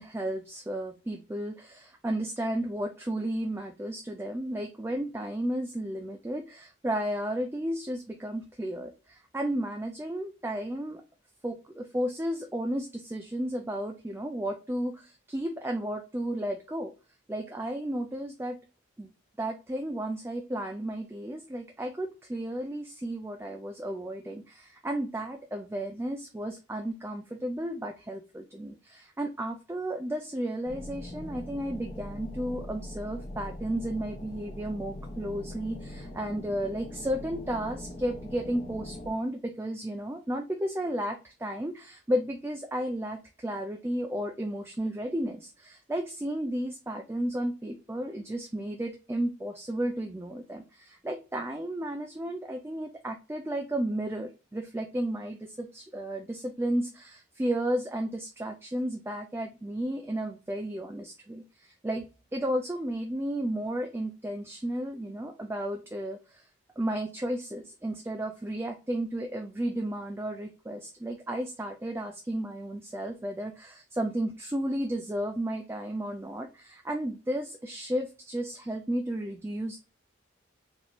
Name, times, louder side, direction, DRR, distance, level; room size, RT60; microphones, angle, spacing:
voice 1, 0.0-11.0 11.4-16.9 17.3-18.6 19.0-19.1 19.4-62.0 62.3-66.5 66.8-79.8, right 1 dB, 10° right, 4 dB, 0.3 m, -33 dB
sound 1, 30.7-39.1, left 1 dB, 30° left, 0.7 m, -41 dB
4.2 x 3.0 x 2.2 m, 0.33 s
head